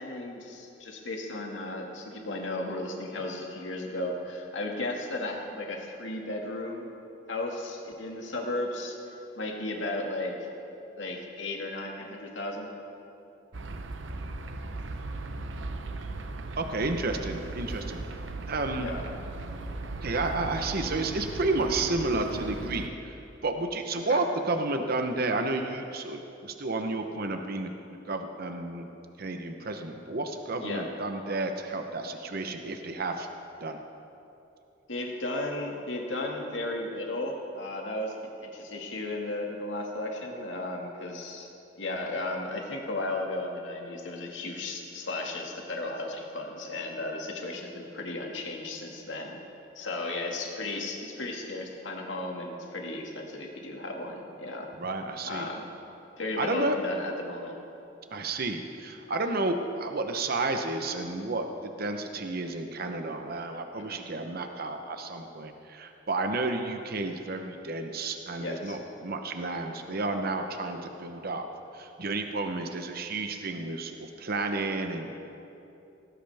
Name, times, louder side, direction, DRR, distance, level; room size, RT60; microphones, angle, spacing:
voice 1, 0.0-6.9 7.3-10.5 11.0-12.7 18.8-19.0 24.1-24.2 30.6-30.9 34.9-38.2 38.4-41.5 41.8-49.4 49.8-54.7 55.2-55.7 56.2-57.6 63.8-64.1 68.4-68.8, left 2 dB, 85° left, 1 dB, 2.0 m, -35 dB
sound 1, 13.5-22.9, right 2 dB, 85° right, 0.8 m, -37 dB
voice 2, 16.6-18.0 18.5-18.9 20.0-27.7 28.1-28.9 29.2-33.3 33.6-33.8 54.8-55.5 56.4-56.8 58.1-71.5 71.7-75.2, right 2 dB, 55° right, 5 dB, 0.9 m, -31 dB
18.0 x 16.0 x 3.5 m, 2.8 s
head